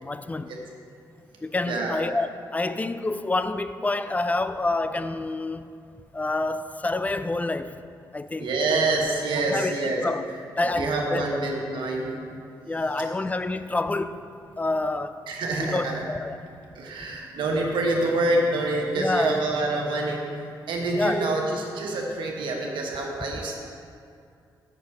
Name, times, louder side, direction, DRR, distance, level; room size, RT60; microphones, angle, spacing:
voice 1, 0.0-0.5 1.4-5.7 6.1-7.8 8.1-8.5 9.5-9.8 10.0-10.2 10.6-11.3 12.7-14.3 14.6-15.2 15.6-16.4 17.6-17.7 18.9-19.5 20.9-21.4, left 2 dB, 20° left, 0.3 m, -28 dB
voice 2, 1.7-2.0 8.4-10.0 10.8-12.1 15.3-16.0 16.7-23.6, right 2 dB, 80° right, 1.3 m, -26 dB
6.0 x 5.4 x 6.7 m
cardioid pair, 80°, 8 cm